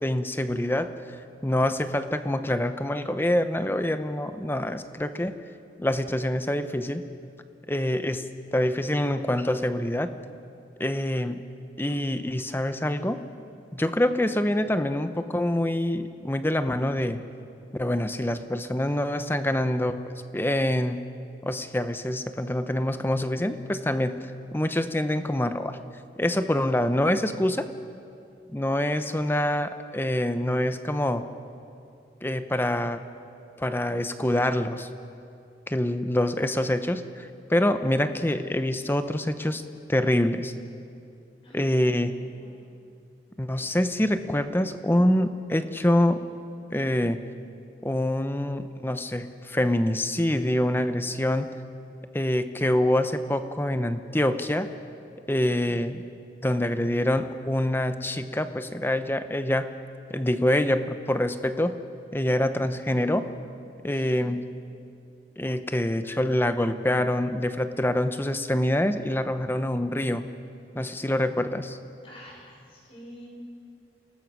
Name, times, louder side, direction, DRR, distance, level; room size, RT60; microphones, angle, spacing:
voice 1, 0.0-0.9 1.4-5.4 5.8-7.0 7.7-10.1 10.8-11.4 11.8-13.2 13.7-17.2 17.8-20.0 20.3-21.0 21.4-24.2 24.5-25.8 26.2-27.6 28.5-31.2 32.2-33.0 33.6-34.9 35.7-39.6 39.9-40.5 41.5-42.1 43.4-46.2 46.7-47.2 47.8-51.5 52.1-54.7 55.3-56.0 56.4-59.7 60.1-61.8 62.1-63.3 63.8-64.4 65.4-70.3 70.7-71.8, left 1 dB, 10° left, 10 dB, 0.9 m, -25 dB
voice 2, 42.1-42.5 63.9-64.3 72.0-73.3, equal, 30° left, -2 dB, 6.3 m, -49 dB
29.0 x 19.0 x 6.3 m, 2.5 s
head